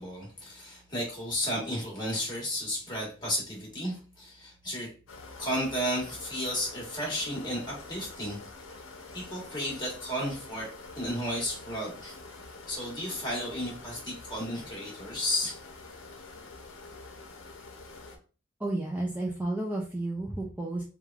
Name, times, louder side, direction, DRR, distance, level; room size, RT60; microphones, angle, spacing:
voice 1, 0.0-4.9 5.4-8.4 9.1-12.2 12.7-15.5, equal, 20° left, -3 dB, 1.2 m, -33 dB
sound 1, 5.1-18.2, left 3 dB, 80° left, 0.6 m, -47 dB
voice 2, 18.6-20.8, right 2 dB, 10° right, -1 dB, 0.3 m, -32 dB
3.2 x 2.2 x 2.3 m, 0.36 s
head